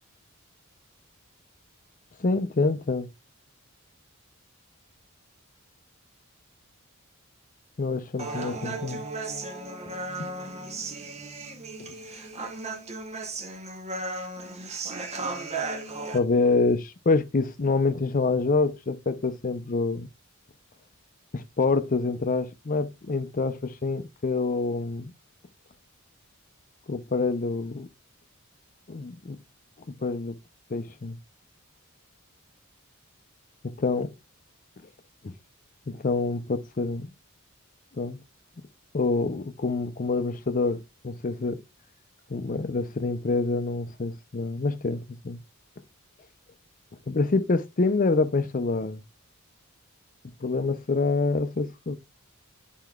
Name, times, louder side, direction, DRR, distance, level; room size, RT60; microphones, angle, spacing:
voice 1, 2.2-3.1 7.8-9.0 9.9-10.3 16.1-20.1 21.3-25.1 26.9-27.9 28.9-29.4 29.9-30.3 30.7-31.2 33.8-34.1 35.2-35.3 35.9-37.1 38.0-38.2 38.9-41.6 42.3-45.4 47.1-49.0 50.4-52.0, left 3 dB, 40° left, 0.5 m, -26 dB
Human voice, 8.2-16.2, right 3 dB, 30° right, 0.9 m, -35 dB
11.0 x 4.6 x 2.3 m
head